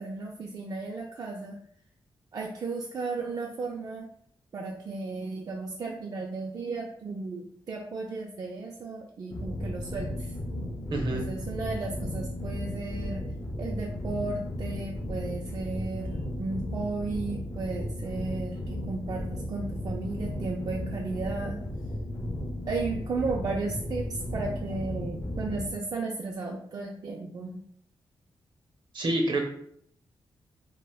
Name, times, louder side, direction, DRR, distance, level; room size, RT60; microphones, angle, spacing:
voice 1, 0.0-1.6 2.3-4.1 4.5-10.3 11.1-13.3 13.6-21.6 22.7-27.6, right 3 dB, 45° right, 0 dB, 0.4 m, -34 dB
sound 1, 9.3-25.7, left 1 dB, 35° left, 0.4 m, -35 dB
voice 2, 10.9-11.2 28.9-29.4, right 1 dB, 60° right, 1 dB, 0.7 m, -27 dB
2.5 x 2.1 x 3.5 m, 0.66 s
cardioid pair, 90°, 9 cm